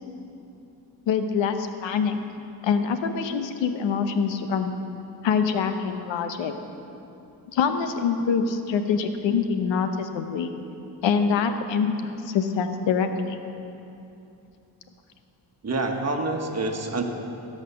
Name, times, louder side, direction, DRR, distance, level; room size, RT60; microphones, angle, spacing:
voice 1, 1.1-2.2 2.6-4.8 5.2-6.5 7.5-10.5 11.0-13.4, left 6 dB, 90° left, 8 dB, 0.9 m, -25 dB
voice 2, 15.6-17.0, right 2 dB, 35° right, 3 dB, 1.4 m, -27 dB
16.5 x 5.8 x 6.9 m, 2.8 s
cardioid pair, 75°, 43 cm